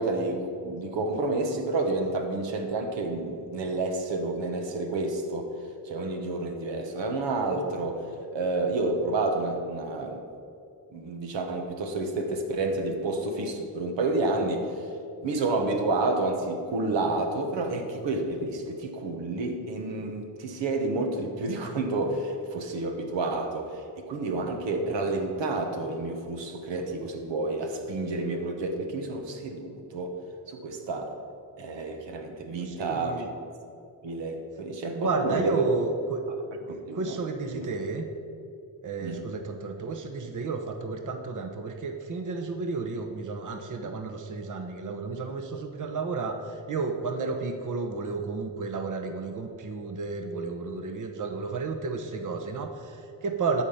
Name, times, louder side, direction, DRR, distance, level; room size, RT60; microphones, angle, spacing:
voice 1, 0.0-5.5 5.8-8.0 8.3-10.2 10.9-14.9 15.2-30.2 30.5-31.1 31.6-33.4 34.0-35.7 36.7-37.1 37.5-37.6 39.0-39.3, right 2 dB, 80° right, 4 dB, 1.2 m, -30 dB
voice 2, 32.5-33.3 34.9-36.2 36.7-38.1 38.8-53.6, right 4 dB, 45° right, 5 dB, 0.9 m, -32 dB
12.0 x 4.2 x 7.2 m, 2.6 s
cardioid pair, 70°, 44 cm